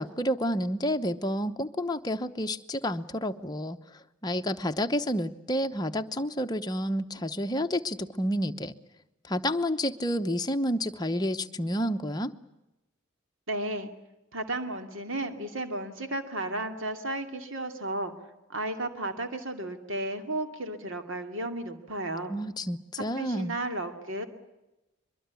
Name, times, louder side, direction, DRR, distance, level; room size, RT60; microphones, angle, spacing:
voice 1, 0.0-3.8 4.2-8.7 9.3-12.3 22.3-23.6, equal, 20° left, 7 dB, 0.9 m, -29 dB
voice 2, 13.5-13.9 14.3-18.1 18.5-22.3 23.2-24.3, right 1 dB, 65° right, 6 dB, 2.5 m, -33 dB
23.5 x 23.0 x 8.3 m, 0.97 s
head